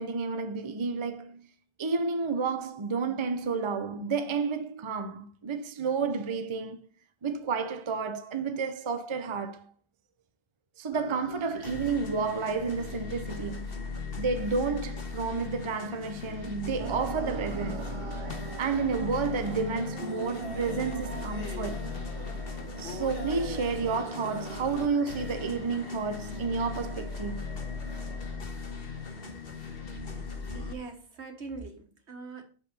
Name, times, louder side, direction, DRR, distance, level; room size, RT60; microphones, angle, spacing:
voice 1, 0.0-1.5 1.8-6.9 7.2-9.6 10.8-13.7 14.2-17.9 18.6-21.8 22.8-27.6, right 5 dB, 30° right, 0.7 m, -31 dB
sound 1, 10.9-30.7, left 4 dB, 60° left, 1.6 m, -38 dB
sound 2, 16.8-28.4, right 7 dB, 60° right, 0.3 m, -43 dB
voice 2, 30.5-32.4, right 3 dB, 80° right, 1.8 m, -42 dB
6.2 x 5.5 x 6.7 m
omnidirectional pair, 1.1 m